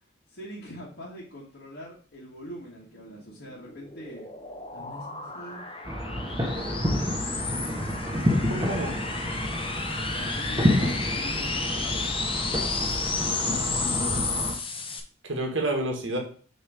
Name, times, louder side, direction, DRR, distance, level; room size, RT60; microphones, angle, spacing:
voice 1, 0.3-4.3 4.7-7.4 10.1-12.1, equal, 65° left, -6 dB, 1.4 m, -44 dB
sound 1, 3.5-15.0, left 4 dB, 25° left, 0.6 m, -32 dB
sound 2, 5.8-14.5, left 1 dB, 20° right, 1.0 m, -29 dB
voice 2, 8.5-9.0 13.4-14.3 15.2-16.2, right 1 dB, 80° right, 2 dB, 1.5 m, -30 dB
6.5 x 3.0 x 4.9 m, 0.42 s
head